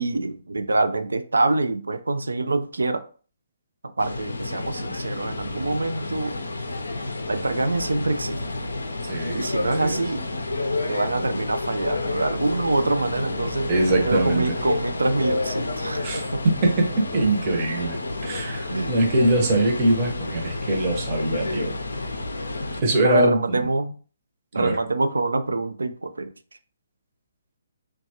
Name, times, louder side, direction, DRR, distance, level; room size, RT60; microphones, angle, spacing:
voice 1, 0.0-3.0 4.0-6.4 7.2-8.4 9.3-10.2 10.9-13.7 14.0-16.4 18.7-18.9 23.0-23.9 24.5-26.3, right 2 dB, 70° right, 0.3 m, -25 dB
sound 1, 4.0-22.8, left 2 dB, 70° left, 0.4 m, -30 dB
voice 2, 9.0-10.0 13.7-14.4 16.0-16.9 17.1-21.7 22.8-23.7 24.5-24.8, right 2 dB, 30° right, 0.8 m, -23 dB
2.9 x 2.2 x 2.7 m
figure-of-eight pair, 135°, 0 cm